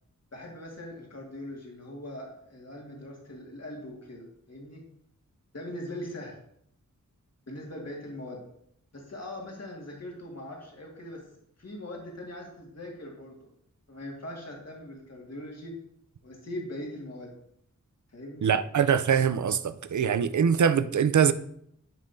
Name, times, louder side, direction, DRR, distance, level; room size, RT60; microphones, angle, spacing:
voice 1, 0.3-4.8 5.5-6.4 7.5-8.4 8.9-11.3 11.6-13.5 13.9-15.7 16.2-17.4 18.1-18.6, left 1 dB, 50° left, 1.9 m, -41 dB
voice 2, 18.4-21.3, right 7 dB, 65° right, 0.5 m, -23 dB
12.0 x 5.4 x 2.7 m
wide cardioid pair, 85°, 32 cm